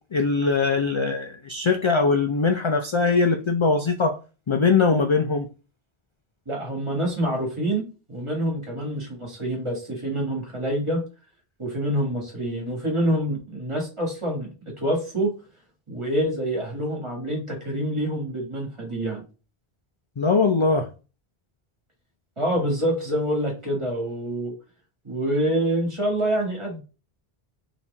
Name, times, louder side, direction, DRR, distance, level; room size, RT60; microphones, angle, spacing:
voice 1, 0.1-4.2 4.5-5.5 20.2-20.9, left 4 dB, 50° left, 0.3 m, -21 dB
voice 2, 6.5-11.0 11.6-14.5 14.8-15.3 15.9-19.2 22.4-24.5 25.0-26.8, right 1 dB, 30° right, 1.8 m, -26 dB
4.2 x 3.0 x 3.4 m
omnidirectional pair, 1.0 m